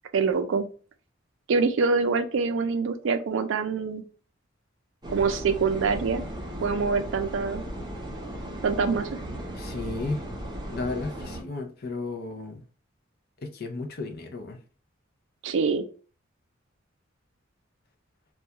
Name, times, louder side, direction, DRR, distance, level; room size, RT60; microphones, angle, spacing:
voice 1, 0.1-0.7 1.5-4.0 5.1-6.3 6.6-7.6 8.6-9.1 15.4-15.8, right 4 dB, 70° right, 0.4 m, -25 dB
sound 1, 5.0-11.4, right 1 dB, 20° right, 0.6 m, -36 dB
voice 2, 9.6-10.2 10.7-12.6 13.4-14.6, left 3 dB, 50° left, 0.5 m, -34 dB
2.3 x 2.2 x 2.8 m
head